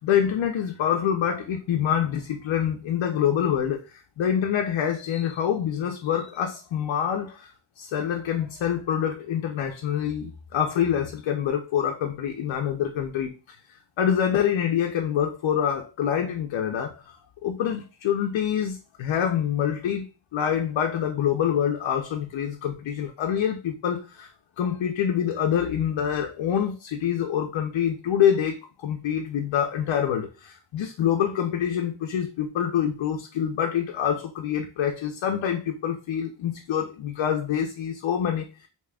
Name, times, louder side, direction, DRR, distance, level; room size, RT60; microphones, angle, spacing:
voice 1, 0.0-13.6 14.0-17.2 17.4-20.0 20.3-24.3 24.6-38.7, left 9 dB, 75° left, 0.6 m, -26 dB
4.8 x 2.8 x 2.2 m
wide cardioid pair, 160°, 47 cm